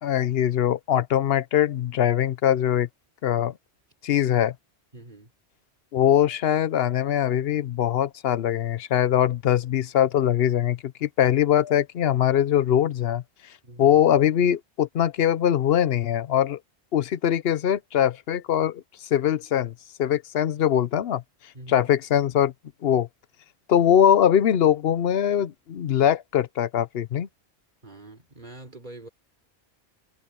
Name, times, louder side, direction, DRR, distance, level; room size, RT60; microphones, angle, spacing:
voice 1, 0.0-2.9 3.2-3.5 4.0-4.5 5.9-13.2 13.8-16.6 16.9-19.7 20.0-21.2 21.7-22.5 22.8-23.1 23.7-27.3, left 10 dB, 65° left, 0.9 m, -22 dB
voice 2, 4.9-5.3 13.6-14.0 21.5-21.9 27.8-29.1, right 2 dB, 40° right, 4.3 m, -44 dB
omnidirectional pair, 1.1 m